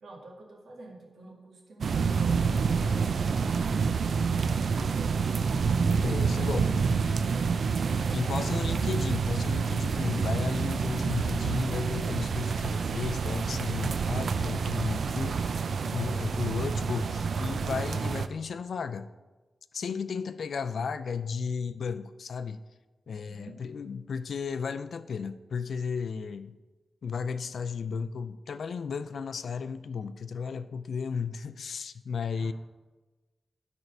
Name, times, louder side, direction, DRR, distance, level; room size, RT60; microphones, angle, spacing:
voice 1, 0.0-5.5 7.2-7.6 8.0-8.7 23.2-23.6 32.4-32.5, right 2 dB, 80° right, 0 dB, 2.0 m, -48 dB
sound 1, 1.8-18.3, right 5 dB, 65° right, 0.4 m, -28 dB
voice 2, 6.0-6.7 8.1-19.1 19.7-22.6 23.1-26.6 27.0-32.5, left 5 dB, 70° left, 12 dB, 0.4 m, -34 dB
12.0 x 4.6 x 5.3 m, 1.2 s
wide cardioid pair, 145°, 0 cm